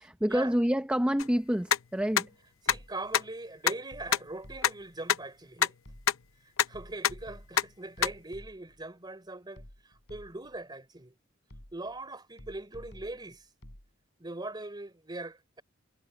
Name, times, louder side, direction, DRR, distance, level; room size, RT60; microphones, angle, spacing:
voice 1, 0.0-2.3, equal, 5° right, 0.8 m, -28 dB
sound 1, 1.2-1.3 1.7-1.8 2.2-2.3 2.7-2.8 3.1-3.2 3.7-3.8 4.1-4.2 4.6-4.7 5.1-5.2 5.6-5.7 6.1-6.2 6.6-6.7 7.0-7.1 7.6-7.7 8.0-8.1, left 9 dB, 80° left, 0.7 m, -24 dB
sound 2, 2.7-3.2 3.9-5.0 5.8-6.4 6.7-8.9 9.6-10.6 11.5-12.0 12.4-13.9, equal, 60° left, 5.9 m, -51 dB
voice 2, 2.7-5.7 6.7-11.1 11.7-13.5 14.2-15.6, right 2 dB, 20° right, 3.4 m, -41 dB
head